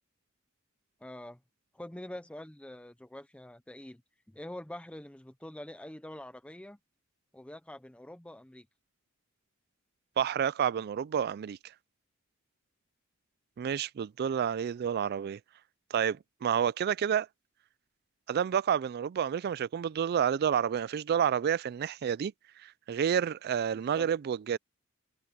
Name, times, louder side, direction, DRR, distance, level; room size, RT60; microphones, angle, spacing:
voice 1, 1.0-1.4 1.7-4.0 4.3-6.8 7.3-8.7 23.9-24.1, left 1 dB, 5° left, 0.6 m, -45 dB
voice 2, 10.2-11.6 13.6-15.4 15.9-17.3 18.3-22.3 22.6-24.6, right 8 dB, 50° right, 0.3 m, -29 dB
head